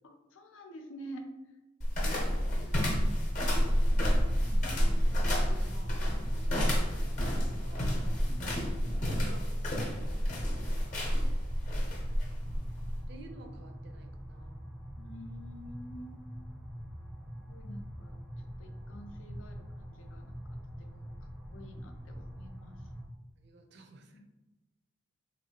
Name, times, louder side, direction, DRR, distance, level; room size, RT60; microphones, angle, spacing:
voice 1, 0.0-1.2 2.0-3.0 4.3-4.7 8.3-9.3 15.0-16.2 17.5-18.2 18.6-22.8 24.1-24.2, equal, 85° left, 4 dB, 0.5 m, -49 dB
sound 1, 1.8-13.1, equal, 40° left, 0.7 m, -29 dB
sound 2, 3.4-23.1, equal, ahead, 0.4 m, -45 dB
voice 2, 5.1-6.0 6.3-8.0 9.1-9.8 10.3-11.3 12.1-14.7 23.4-24.2, right 2 dB, 60° right, 4 dB, 0.5 m, -54 dB
3.4 x 2.6 x 2.8 m, 1.1 s
head